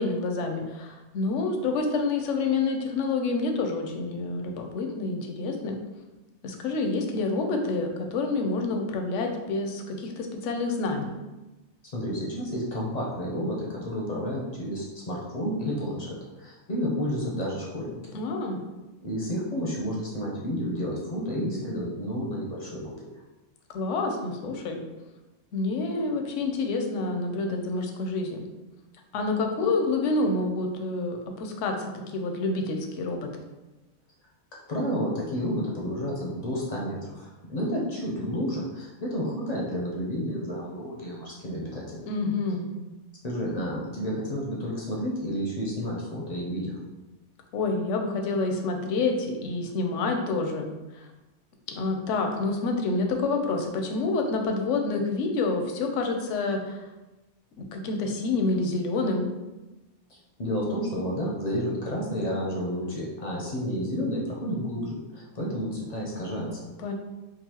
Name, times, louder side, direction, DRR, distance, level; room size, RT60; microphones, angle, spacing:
voice 1, 0.0-5.8 6.4-11.1 18.1-18.6 23.7-24.8 25.5-28.4 29.1-33.3 42.1-42.7 47.5-50.7 50.9-51.1 51.8-56.9 57.7-59.3 66.8-66.9, left 3 dB, 85° left, 4 dB, 0.9 m, -28 dB
voice 2, 11.9-18.2 19.0-23.1 34.7-42.0 43.2-46.8 60.1-66.7, equal, 50° left, -3 dB, 0.5 m, -31 dB
3.8 x 2.5 x 2.8 m, 1.1 s
omnidirectional pair, 1.2 m